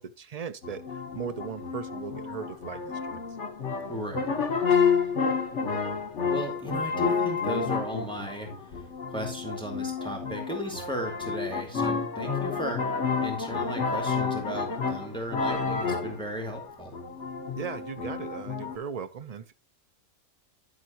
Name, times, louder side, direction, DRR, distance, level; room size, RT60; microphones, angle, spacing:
voice 1, 0.0-3.2 17.6-19.5, right 6 dB, 75° right, 0.3 m, -38 dB
sound 1, 0.6-18.8, left 5 dB, 55° left, 1.7 m, -30 dB
voice 2, 3.9-4.3 6.2-8.8 9.1-12.9 13.2-16.9, right 1 dB, 5° left, 2.2 m, -36 dB
11.0 x 7.9 x 2.9 m
omnidirectional pair, 1.5 m